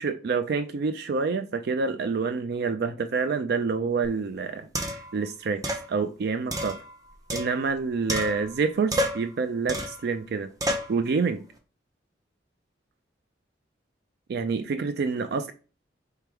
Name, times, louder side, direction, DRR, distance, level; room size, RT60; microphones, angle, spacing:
voice 1, 0.0-5.6 5.9-6.8 7.3-10.5 10.9-11.4 14.3-15.5, right 4 dB, 60° right, 9 dB, 0.4 m, -27 dB
sound 1, 4.0-4.1 4.7-5.1 5.6-5.9 6.5-7.8 8.1-8.6 8.9-9.3 9.7-10.0 10.6-10.9, right 1 dB, 20° right, 0.7 m, -30 dB
3.5 x 3.3 x 4.6 m, 0.36 s
head